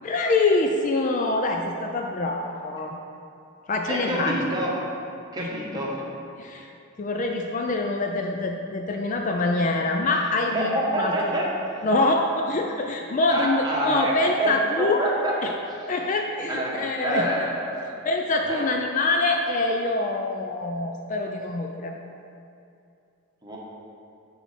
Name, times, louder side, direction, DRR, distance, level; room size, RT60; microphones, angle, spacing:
voice 1, 0.0-3.0 3.7-4.4 5.4-5.5 6.4-6.7 7.0-11.3 11.8-15.0 15.4-15.5 15.9-17.5 18.0-21.9, left 2 dB, 35° left, 2 dB, 0.3 m, -25 dB
voice 2, 3.9-4.7 5.3-5.9 10.5-11.5 13.3-14.5 14.8-15.3 16.5-17.9 18.5-18.6 23.4-23.6, right 1 dB, 20° right, -4 dB, 1.1 m, -27 dB
9.0 x 4.8 x 4.2 m, 2.6 s
head